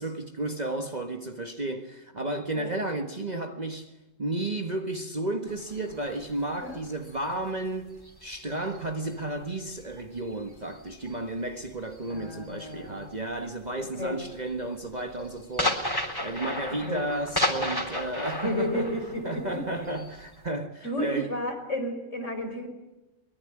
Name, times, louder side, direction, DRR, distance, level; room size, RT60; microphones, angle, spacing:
voice 1, 0.0-3.9 4.2-7.9 8.2-18.9 19.2-21.3, right 2 dB, 35° right, 1.5 m, -33 dB
sound 1, 5.5-9.3 9.7-13.1 13.4-13.7 14.1-20.5, left 1 dB, 15° left, 3.7 m, -33 dB
voice 2, 12.1-13.0 14.0-14.2 16.7-17.0 18.4-19.6 20.8-22.7, left 1 dB, 65° left, 5.7 m, -32 dB
23.5 x 22.5 x 9.9 m
omnidirectional pair, 1.3 m